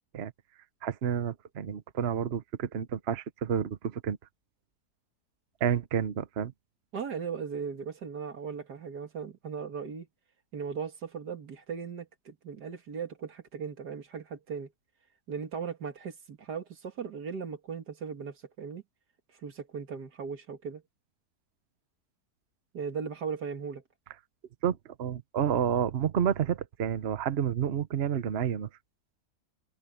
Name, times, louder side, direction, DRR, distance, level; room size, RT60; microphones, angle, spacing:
voice 1, 0.8-4.2 5.6-6.5 24.6-28.7, right 8 dB, 45° right, 1.0 m, -30 dB
voice 2, 6.9-10.1 10.5-14.7 15.3-18.8 19.4-20.8 22.7-23.8, right 6 dB, 80° right, 2.4 m, -38 dB
omnidirectional pair, 1.7 m